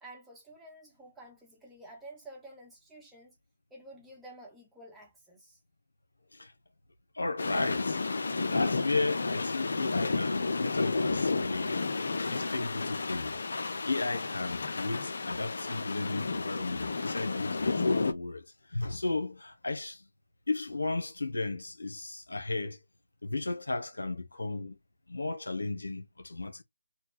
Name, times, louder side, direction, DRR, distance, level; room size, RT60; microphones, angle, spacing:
voice 1, 0.0-3.4 3.7-5.6, right 1 dB, 5° right, 1.0 m, -50 dB
voice 2, 7.1-11.8 12.3-13.4 13.9-20.1 20.5-22.8 23.2-24.8 25.1-26.6, left 3 dB, 85° left, 1.1 m, -34 dB
sound 1, 7.4-18.1, left 3 dB, 60° left, 0.6 m, -31 dB
4.3 x 2.3 x 4.1 m
figure-of-eight pair, 160°, 0 cm